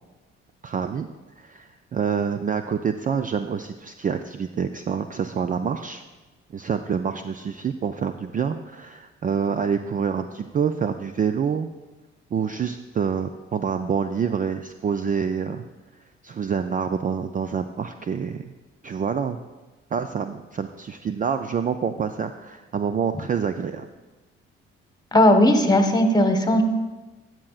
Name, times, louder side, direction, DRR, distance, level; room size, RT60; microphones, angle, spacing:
voice 1, 0.6-1.1 1.4-6.0 6.5-11.7 12.3-15.6 16.2-18.5 18.8-19.4 19.9-23.9, right 7 dB, 25° right, 9 dB, 0.4 m, -27 dB
voice 2, 25.1-26.6, left 1 dB, 15° left, 5 dB, 1.3 m, -17 dB
12.5 x 7.5 x 2.4 m, 1.2 s
hypercardioid pair, 50°, 31 cm